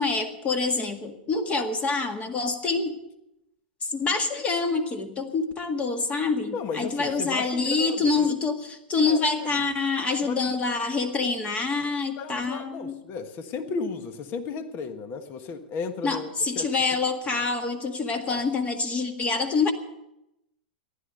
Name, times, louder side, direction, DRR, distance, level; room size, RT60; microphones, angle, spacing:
voice 1, 0.0-2.9 3.8-12.9 16.0-19.7, left 4 dB, 25° left, 6 dB, 1.9 m, -26 dB
voice 2, 6.5-8.1 9.1-9.6 10.2-10.6 12.2-16.3 16.5-16.7 17.3-17.4 18.3-18.4, left 5 dB, 40° left, 9 dB, 1.4 m, -34 dB
15.0 x 11.5 x 6.7 m, 0.87 s
hypercardioid pair, 115°, 5 cm